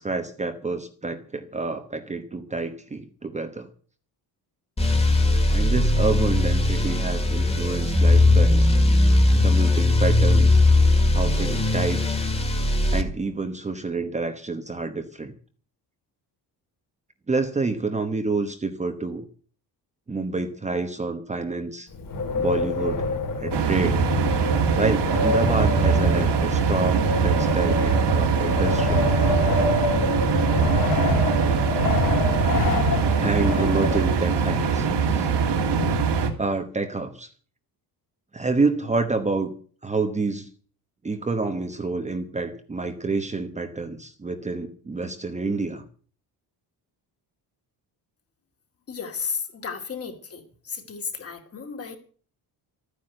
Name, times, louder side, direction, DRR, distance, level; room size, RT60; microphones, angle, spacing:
voice 1, 0.0-3.7 5.5-8.7 9.4-10.6 11.1-12.2 12.9-15.3 17.3-19.2 20.1-21.9 22.3-23.0 23.4-24.0 24.8-29.1 33.2-35.3 36.4-37.3 38.3-39.5 39.8-40.5 41.0-45.8, right 3 dB, 15° right, 6 dB, 1.1 m, -28 dB
sound 1, 4.8-13.0, left 2 dB, 15° left, 1.9 m, -19 dB
Wind, 21.9-34.5, left 2 dB, 50° left, 3.1 m, -27 dB
sound 2, 23.5-36.3, right 5 dB, 80° right, 2.9 m, -22 dB
voice 2, 48.9-52.0, left 6 dB, 35° left, 5 dB, 2.5 m, -33 dB
13.5 x 9.9 x 7.8 m, 0.43 s
cardioid pair, 170°, 41 cm